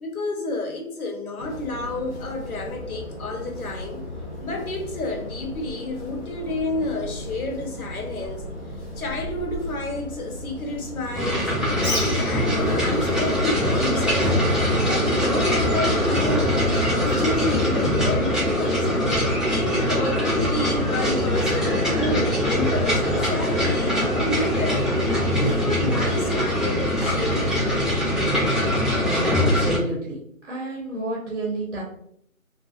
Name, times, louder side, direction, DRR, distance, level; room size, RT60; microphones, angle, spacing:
voice 1, 0.0-4.0 4.4-8.4 9.0-11.5 11.8-16.6 17.0-18.9 19.4-24.9 25.4-27.9, left 2 dB, 80° left, 2 dB, 0.8 m, -30 dB
sound 1, 1.4-17.6, left 1 dB, 45° left, 0.6 m, -36 dB
sound 2, 11.1-29.8, equal, ahead, 0.4 m, -22 dB
Bird, 11.7-18.4, left 1 dB, 20° right, 0.8 m, -38 dB
voice 2, 28.6-30.2 30.5-31.8, right 2 dB, 55° right, -2 dB, 0.6 m, -30 dB
2.3 x 2.1 x 2.6 m, 0.70 s
figure-of-eight pair, 170°, 43 cm